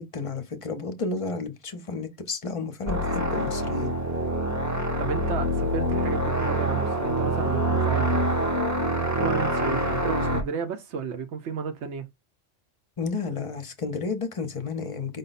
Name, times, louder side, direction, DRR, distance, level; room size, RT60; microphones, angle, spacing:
voice 1, 0.0-3.9 13.0-15.2, left 4 dB, 35° left, 0.6 m, -32 dB
sound 1, 2.9-10.4, right 1 dB, 20° right, 0.6 m, -25 dB
voice 2, 5.0-8.2 9.0-12.0, right 6 dB, 80° right, 0.9 m, -33 dB
5.2 x 2.1 x 4.0 m
omnidirectional pair, 1.2 m